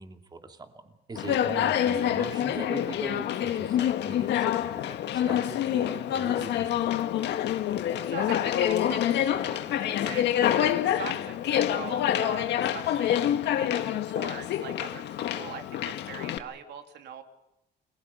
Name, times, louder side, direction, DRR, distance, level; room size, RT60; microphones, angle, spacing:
voice 1, 0.0-7.0, right 3 dB, 25° right, 6 dB, 2.7 m, -41 dB
Conversation, 1.2-16.4, left 11 dB, 90° left, 1.7 m, -27 dB
voice 2, 8.0-13.1 13.4-17.2, right 8 dB, 75° right, 6 dB, 3.0 m, -42 dB
29.5 x 21.5 x 5.6 m, 0.93 s
cardioid pair, 140°, 18 cm